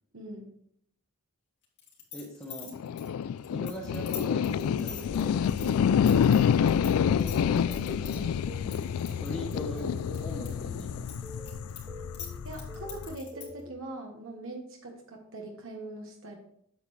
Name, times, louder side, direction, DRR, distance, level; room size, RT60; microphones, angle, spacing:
voice 1, 0.1-0.5 5.6-5.9 12.4-16.4, right 2 dB, 65° right, 1 dB, 1.3 m, -42 dB
sound 1, 1.8-6.9 7.2-8.2 8.7-10.5 10.8-13.6, left 8 dB, 55° left, 2.5 m, -43 dB
voice 2, 2.1-2.7 3.5-5.4 7.1-8.3 9.2-11.1, equal, 10° left, -4 dB, 1.3 m, -41 dB
sound 2, 2.7-13.1, left 8 dB, 80° left, 0.3 m, -28 dB
sound 3, 4.4-13.7, right 1 dB, 25° right, 0.7 m, -46 dB
8.6 x 7.6 x 3.2 m, 0.68 s
head